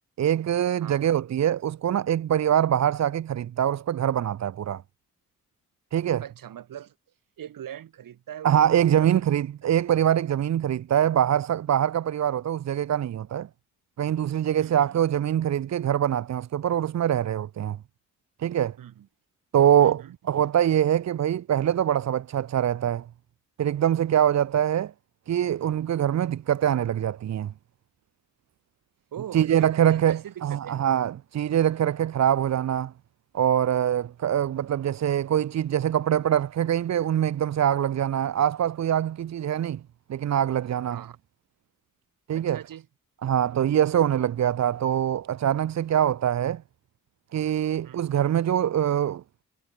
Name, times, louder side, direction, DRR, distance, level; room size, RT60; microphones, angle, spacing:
voice 1, 0.2-4.8 5.9-6.2 8.4-13.5 14.0-17.8 18.4-18.8 19.5-23.0 23.6-24.9 25.3-27.5 29.3-32.9 33.3-39.8 40.1-41.0 42.3-42.6 43.2-46.6 47.3-49.2, right 10 dB, 55° right, 0.7 m, -24 dB
voice 2, 6.2-6.9 7.4-9.2 14.6-15.0 18.8-19.1 19.8-20.2 29.1-30.8 40.9-41.2 42.3-42.9 47.8-48.2, right 10 dB, 85° right, 6.8 m, -41 dB
cardioid pair, 75°, 32 cm